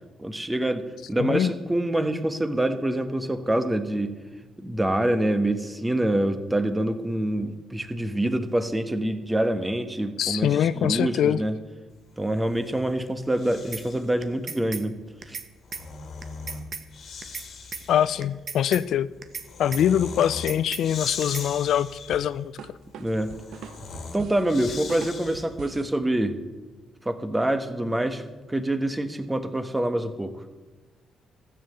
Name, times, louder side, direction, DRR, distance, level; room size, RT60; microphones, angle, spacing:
voice 1, 0.2-4.1 4.6-11.5 12.2-15.0 15.3-15.4 23.0-23.3 24.1-26.4 27.0-28.2 28.5-30.4, right 1 dB, 10° right, 9 dB, 1.2 m, -26 dB
voice 2, 1.2-1.5 10.2-11.4 17.9-19.1 19.6-22.6, left 10 dB, 75° left, 17 dB, 0.4 m, -23 dB
Breathing, 12.2-14.2 15.4-25.7, left 4 dB, 55° left, 1.9 m, -40 dB
sound 1, 13.7-13.8 14.2-14.8 15.2-15.5 15.7-15.8 16.2-16.8 17.2-17.5 17.7-17.8 18.2-18.8 19.2-19.5 19.7-19.8 20.2-20.8 21.2-21.5, right 5 dB, 50° right, 1.3 m, -35 dB
sound 2, 22.1-25.9, right 7 dB, 75° right, 0.9 m, -42 dB
14.0 x 7.5 x 7.9 m, 1.2 s
cardioid pair, 90°, 0 cm